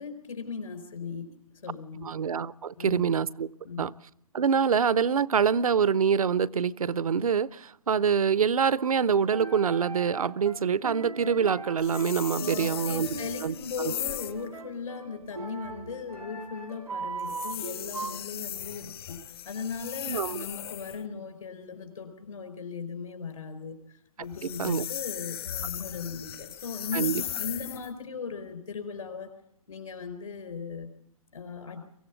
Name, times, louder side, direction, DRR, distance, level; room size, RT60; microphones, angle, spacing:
voice 1, 0.0-2.2 2.8-3.1 3.6-3.9 12.4-29.3 29.7-30.9 31.3-31.8, left 5 dB, 70° left, 4.5 m, -38 dB
voice 2, 2.0-3.5 3.8-3.9 4.3-13.1 13.4-13.5 20.1-20.5 24.4-24.8 26.9-27.2, right 7 dB, 75° right, 0.7 m, -25 dB
sound 1, 8.8-18.2, right 4 dB, 90° right, 1.7 m, -40 dB
sound 2, 11.8-14.4 17.2-21.0 24.2-27.9, left 11 dB, 40° left, 0.7 m, -37 dB
24.0 x 15.5 x 7.2 m
figure-of-eight pair, 140°, 19 cm